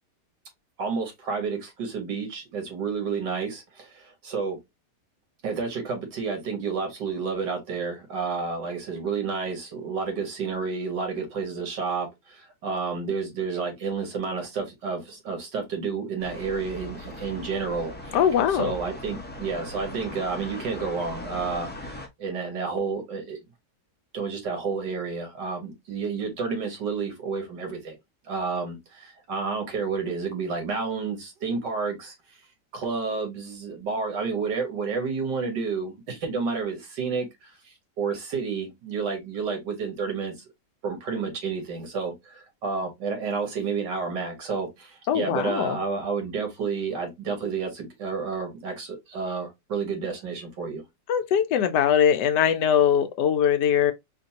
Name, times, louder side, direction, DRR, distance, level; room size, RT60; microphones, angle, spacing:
voice 1, 0.8-4.6 5.4-18.2 18.5-23.4 24.1-28.0 28.2-32.1 32.7-40.3 40.8-50.9, right 5 dB, 85° right, 2.1 m, -30 dB
sound 1, 16.2-22.1, left 1 dB, 15° left, 0.3 m, -39 dB
voice 2, 18.1-18.7 45.1-45.8 51.1-53.9, left 8 dB, 80° left, 1.2 m, -21 dB
4.3 x 2.6 x 2.8 m
omnidirectional pair, 1.8 m